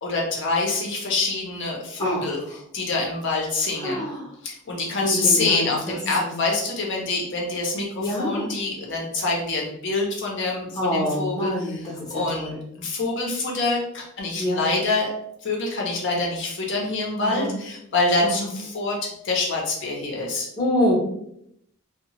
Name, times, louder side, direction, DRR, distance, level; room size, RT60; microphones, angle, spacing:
voice 1, 0.0-2.4 2.7-4.1 4.4-11.8 12.1-15.1 15.4-19.0 19.2-20.5, left 3 dB, 55° left, -2 dB, 0.6 m, -26 dB
voice 2, 2.0-2.4 3.8-4.3 5.0-6.4 8.0-8.5 10.7-12.6 14.4-14.6 17.2-17.5 18.2-18.5 20.6-20.9, equal, 20° left, -5 dB, 0.7 m, -26 dB
2.7 x 2.0 x 2.9 m, 0.74 s
head